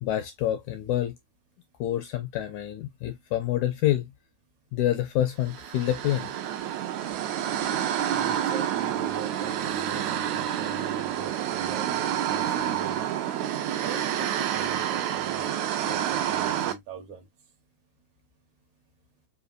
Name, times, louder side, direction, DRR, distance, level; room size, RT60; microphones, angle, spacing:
voice 1, 0.0-1.2 1.8-4.1 4.7-6.3, left 13 dB, 85° left, 1.7 m, -27 dB
sound 1, 5.5-16.7, right 10 dB, 85° right, 1.6 m, -28 dB
voice 2, 8.1-13.1 13.8-17.3, right 5 dB, 70° right, 2.0 m, -41 dB
5.2 x 2.8 x 2.4 m
omnidirectional pair, 4.0 m